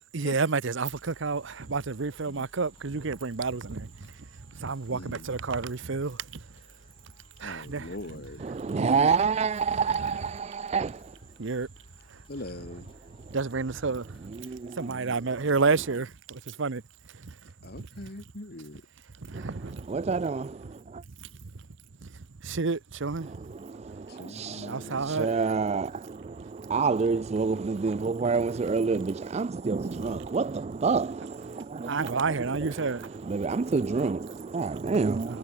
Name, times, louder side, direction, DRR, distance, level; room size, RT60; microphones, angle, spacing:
voice 1, 0.1-4.1 4.5-6.4 7.4-7.9 8.7-9.1 11.4-11.7 13.3-14.3 14.8-16.8 17.2-17.3 19.2-20.0 21.2-21.3 22.0-22.1 22.4-23.5 24.7-25.3 29.9-30.3 31.9-33.1 35.3-35.4, right 4 dB, 55° right, 0.7 m, -30 dB
sound 1, 0.8-16.6, left 1 dB, 25° left, 2.9 m, -59 dB
voice 2, 4.9-5.3 7.4-8.4 12.3-12.9 17.6-18.8 24.1-25.1, left 1 dB, 45° left, 1.8 m, -42 dB
voice 3, 8.4-11.2 13.3-13.4 14.2-15.1 19.3-20.5 23.2-35.4, right 5 dB, 30° right, 0.3 m, -29 dB
head